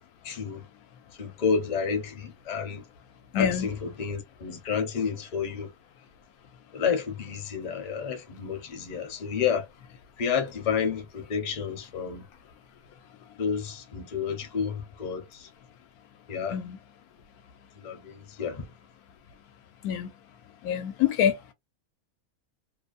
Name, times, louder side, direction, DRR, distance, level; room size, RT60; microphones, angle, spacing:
voice 1, 0.2-0.6 1.1-2.8 3.3-5.7 6.7-9.7 10.2-12.2 13.4-15.5 16.3-16.6 17.8-18.7, left 6 dB, 40° left, 0.6 m, -30 dB
voice 2, 3.3-3.7 16.5-16.8 19.8-20.1 20.6-21.3, left 9 dB, 80° left, 1.1 m, -25 dB
2.7 x 2.1 x 2.4 m
omnidirectional pair, 1.5 m